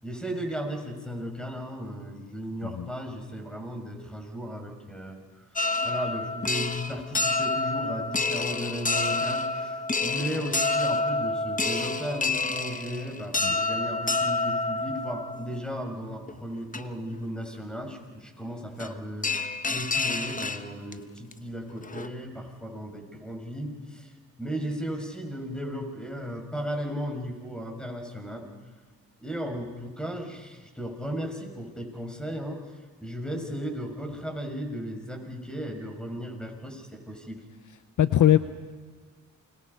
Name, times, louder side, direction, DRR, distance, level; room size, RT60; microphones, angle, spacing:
voice 1, 0.0-5.2 5.8-24.1 24.4-28.4 29.2-32.6 33.0-37.4, equal, ahead, 3 dB, 6.4 m, -35 dB
sound 1, 5.6-15.6 16.3-16.4 16.7-16.8 18.8-18.9 19.2-20.9 21.3-21.4 21.8-22.1, left 3 dB, 25° left, 1.2 m, -28 dB
voice 2, 38.0-38.4, left 11 dB, 60° left, 12 dB, 0.8 m, -19 dB
28.5 x 22.5 x 5.6 m, 1.5 s
cardioid pair, 60°, 34 cm